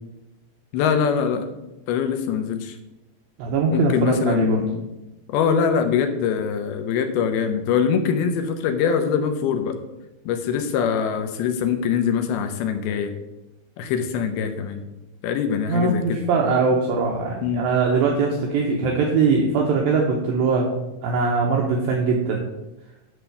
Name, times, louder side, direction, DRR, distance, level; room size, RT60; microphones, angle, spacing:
voice 1, 0.7-1.5 1.9-2.8 3.7-4.9 5.3-9.8 10.3-13.1 13.8-14.8 15.2-16.2 17.4-17.6, left 7 dB, 75° left, 7 dB, 2.5 m, -23 dB
voice 2, 3.4-4.6 15.7-20.7 21.0-22.5, right 4 dB, 75° right, -1 dB, 2.4 m, -21 dB
11.0 x 3.7 x 6.8 m, 0.98 s
omnidirectional pair, 4.8 m